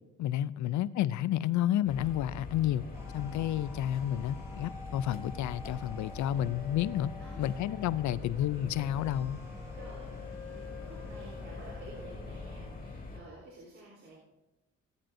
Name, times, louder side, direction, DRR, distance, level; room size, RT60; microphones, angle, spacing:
voice 1, 0.2-2.8 3.1-7.1 7.4-9.4, left 12 dB, 70° left, 0.5 m, -30 dB
sound 1, 1.8-13.2, left 3 dB, 30° left, 2.2 m, -43 dB
sound 2, 2.6-13.0, left 4 dB, 10° right, 3.9 m, -50 dB
voice 2, 7.2-8.2 9.7-14.1, right 2 dB, 45° right, 3.6 m, -52 dB
18.5 x 9.0 x 2.6 m
cardioid pair, 90°, 30 cm